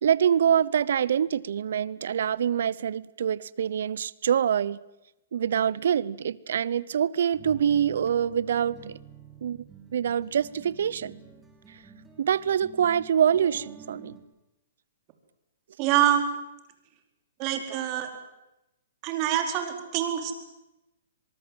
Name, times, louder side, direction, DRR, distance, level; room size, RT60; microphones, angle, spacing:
voice 1, 0.0-4.8 5.3-9.0 9.4-9.6 9.9-11.1 12.2-14.1, right 8 dB, 70° right, 0.9 m, -25 dB
sound 1, 7.3-14.2, right 6 dB, 10° right, 5.8 m, -48 dB
voice 2, 15.8-16.3 17.4-18.1 19.0-20.3, right 11 dB, 35° right, 4.5 m, -25 dB
23.5 x 23.0 x 7.9 m
hypercardioid pair, 135°, 0 cm